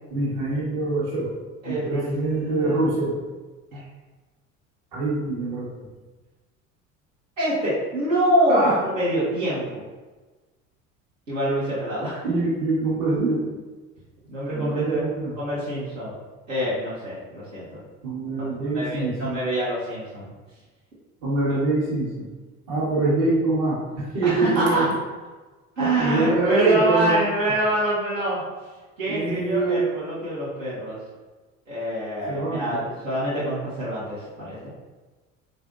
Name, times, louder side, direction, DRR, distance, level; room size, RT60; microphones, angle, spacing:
voice 1, 0.1-1.3 1.7-3.1 4.9-5.7 8.5-8.8 12.2-13.5 14.5-15.3 18.0-19.4 21.2-22.3 22.7-24.9 26.0-27.2 29.1-29.8 32.3-32.8, right 2 dB, 50° right, -6 dB, 1.4 m, -24 dB
voice 2, 1.6-3.1 3.7-3.8 7.4-9.8 11.3-12.2 14.3-15.0 15.4-16.2 16.5-17.8 18.4-18.5 18.7-20.3 21.5-21.6 24.2-24.9 25.8-28.4 29.0-31.0 31.7-34.7, right 1 dB, 75° right, -10 dB, 1.3 m, -26 dB
3.8 x 3.2 x 2.5 m, 1.3 s
figure-of-eight pair, 65°, 40 cm